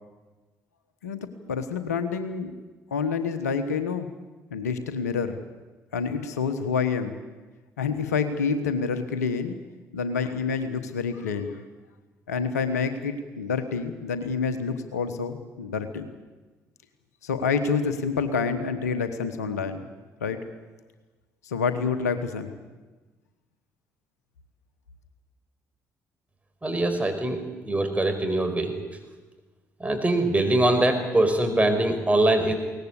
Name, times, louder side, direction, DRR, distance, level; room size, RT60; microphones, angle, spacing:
voice 1, 1.0-2.5 2.9-4.1 4.5-5.4 5.9-7.2 7.8-9.6 9.9-11.6 12.3-16.1 17.2-19.9 20.2-20.4 21.4-22.5, left 5 dB, 80° left, 10 dB, 1.2 m, -28 dB
voice 2, 26.6-27.4 27.7-28.7 29.8-32.5, right 1 dB, 15° right, 5 dB, 5.1 m, -22 dB
22.0 x 18.5 x 8.4 m, 1.3 s
figure-of-eight pair, 45°, 8 cm